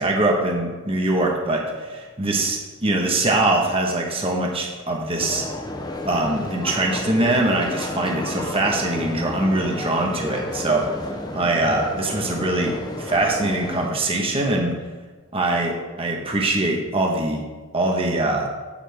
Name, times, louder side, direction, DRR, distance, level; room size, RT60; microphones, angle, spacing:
voice 1, 0.0-5.4 6.0-14.7 15.3-17.4 17.7-18.5, right 2 dB, 25° right, 0 dB, 1.2 m, -23 dB
sound 1, 5.2-13.9, left 1 dB, 20° left, 0.7 m, -32 dB
9.1 x 8.4 x 3.5 m, 1.3 s
head